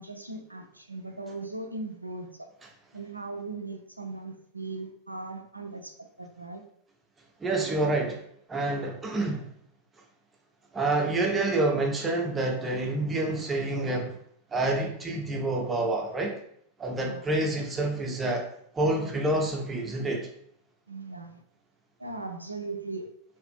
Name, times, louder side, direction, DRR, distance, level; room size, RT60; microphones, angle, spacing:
voice 1, 0.0-2.5 2.9-6.6 17.0-17.3 20.9-21.4 22.0-23.1, right 3 dB, 85° right, 4 dB, 0.3 m, -38 dB
voice 2, 7.4-8.2 8.5-9.4 10.7-14.2 14.5-16.4 16.8-18.4 18.7-20.3, right 2 dB, 15° right, 1 dB, 0.6 m, -28 dB
2.6 x 2.4 x 2.6 m, 0.68 s
figure-of-eight pair, 90°, 0 cm